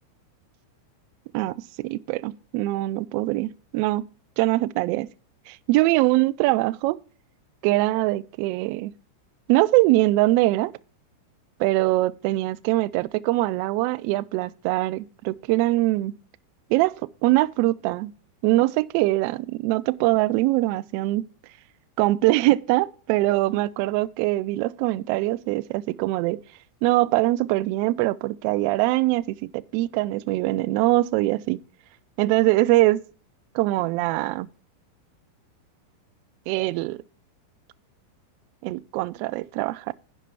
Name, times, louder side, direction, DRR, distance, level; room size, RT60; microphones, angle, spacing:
voice 1, 1.3-4.0 4.4-5.1 5.5-7.0 7.6-8.9 9.5-10.7 11.6-16.1 16.7-17.0 17.2-18.1 18.4-21.3 22.0-26.4 26.8-31.6 32.2-33.0 33.5-34.5 36.5-37.0 38.6-39.9, right 18 dB, 45° right, 0.3 m, -23 dB
10.5 x 4.6 x 5.5 m
figure-of-eight pair, 90°, 0 cm